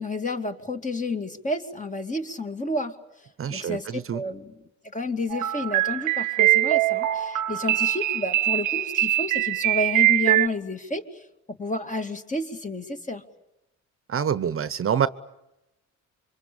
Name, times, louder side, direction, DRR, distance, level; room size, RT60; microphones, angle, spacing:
voice 1, 0.0-3.0 3.5-4.5 4.9-13.2, left 2 dB, 25° left, 6 dB, 2.4 m, -30 dB
voice 2, 3.4-4.2 14.1-15.1, right 8 dB, 45° right, 14 dB, 1.0 m, -26 dB
sound 1, 5.3-10.5, right 14 dB, 85° right, 1.0 m, -22 dB
27.5 x 24.5 x 8.7 m, 0.91 s
cardioid pair, 90°, 30 cm